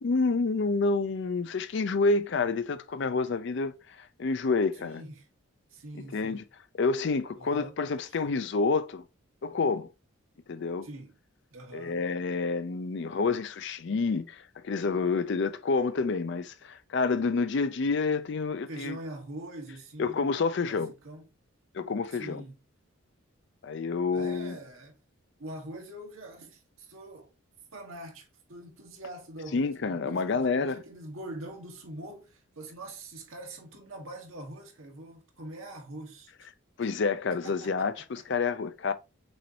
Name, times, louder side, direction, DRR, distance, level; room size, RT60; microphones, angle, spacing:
voice 1, 0.0-5.0 6.1-6.4 6.8-9.0 9.4-9.9 10.5-10.9 11.7-19.0 20.0-20.9 21.7-22.4 23.6-24.6 29.5-30.8 36.8-38.9, left 4 dB, 55° left, 0.4 m, -28 dB
voice 2, 4.8-5.3 5.7-6.4 7.4-7.8 10.8-11.1 11.5-12.0 18.7-20.3 20.7-21.2 22.2-22.6 24.1-25.0 25.4-27.3 27.7-36.3 37.3-38.2, right 1 dB, 75° right, 1.3 m, -44 dB
6.2 x 2.6 x 2.8 m
head